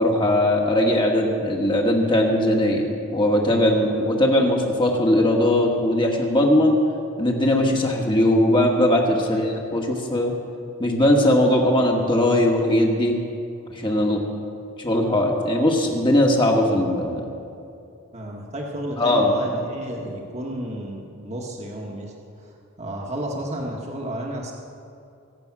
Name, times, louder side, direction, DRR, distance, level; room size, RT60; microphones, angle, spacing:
voice 1, 0.0-6.8 7.2-10.3 10.8-13.2 13.7-14.2 14.8-17.2 19.0-19.3, left 1 dB, 20° left, 0 dB, 1.7 m, -19 dB
voice 2, 9.2-9.6 18.1-22.1 22.4-24.5, right 1 dB, 30° right, -1 dB, 1.5 m, -32 dB
24.0 x 8.9 x 6.1 m, 2.6 s
head